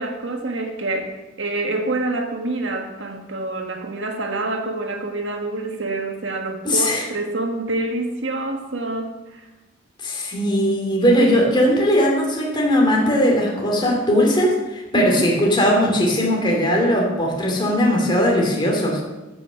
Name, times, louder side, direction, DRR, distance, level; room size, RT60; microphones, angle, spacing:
voice 1, 0.0-9.4 14.9-15.3, right 2 dB, 70° right, 3 dB, 1.8 m, -26 dB
voice 2, 6.6-7.0 10.0-19.0, equal, 25° left, -1 dB, 2.7 m, -19 dB
14.0 x 6.1 x 6.3 m, 1.1 s
head